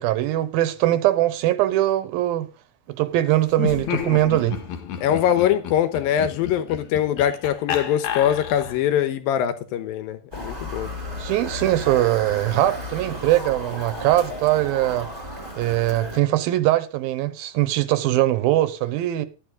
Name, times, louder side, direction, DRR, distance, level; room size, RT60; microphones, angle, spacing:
voice 1, 0.0-2.5 2.9-4.6 11.2-15.1 15.6-19.3, right 14 dB, 80° right, 2.5 m, -21 dB
Laughter, 3.5-8.9, left 9 dB, 60° left, 2.4 m, -31 dB
voice 2, 5.0-10.9, left 10 dB, 75° left, 2.7 m, -22 dB
Motor vehicle (road) / Siren, 10.3-16.2, left 1 dB, 10° right, 2.1 m, -34 dB
12.0 x 9.1 x 3.8 m
omnidirectional pair, 4.3 m